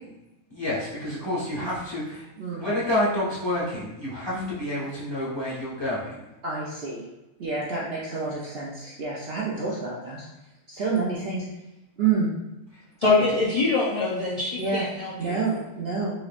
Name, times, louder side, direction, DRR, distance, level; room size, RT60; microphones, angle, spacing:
voice 1, 0.5-2.2 2.6-6.1, left 1 dB, 20° left, -9 dB, 1.3 m, -28 dB
voice 2, 6.4-7.0 7.4-10.2 10.7-11.4 12.0-12.3 14.6-14.8 15.2-16.1, right 4 dB, 55° right, -5 dB, 0.7 m, -28 dB
voice 3, 13.0-15.4, left 3 dB, 70° left, -7 dB, 0.3 m, -24 dB
4.3 x 3.0 x 2.5 m, 0.94 s
omnidirectional pair, 1.5 m